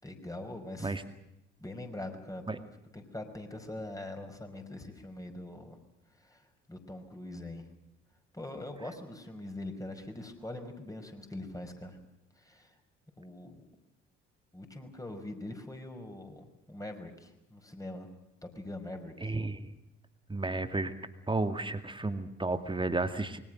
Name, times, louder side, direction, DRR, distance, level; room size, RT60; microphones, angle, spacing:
voice 1, 0.0-0.9 1.6-2.7 2.9-5.8 6.2-7.7 8.3-12.0 12.4-12.8 13.2-13.7 14.5-18.1 18.4-19.4, left 1 dB, 10° left, 5 dB, 5.2 m, -43 dB
voice 2, 19.2-19.6 20.3-20.9 21.3-23.4, right 2 dB, 15° right, 9 dB, 2.2 m, -32 dB
27.0 x 23.5 x 6.4 m, 0.87 s
figure-of-eight pair, 50°, 36 cm